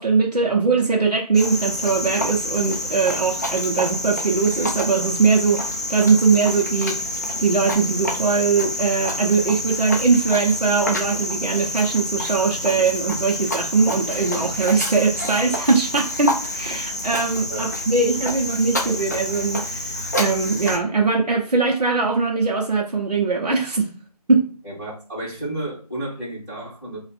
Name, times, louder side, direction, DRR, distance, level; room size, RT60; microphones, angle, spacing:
voice 1, 0.0-7.1 7.4-23.9 24.3-24.5, right 4 dB, 85° right, 0.9 m, -21 dB
Cricket, 1.3-20.8, left 1 dB, 25° left, 0.5 m, -28 dB
sound 1, 11.1-11.8 12.2-14.1 14.4-14.6 15.2-15.9 16.2-16.3 16.6-17.5 18.2-19.1, right 2 dB, 60° right, 1.0 m, -41 dB
voice 2, 24.6-27.0, right 1 dB, 10° right, 1.7 m, -32 dB
3.3 x 2.5 x 4.1 m
figure-of-eight pair, 170°, 20 cm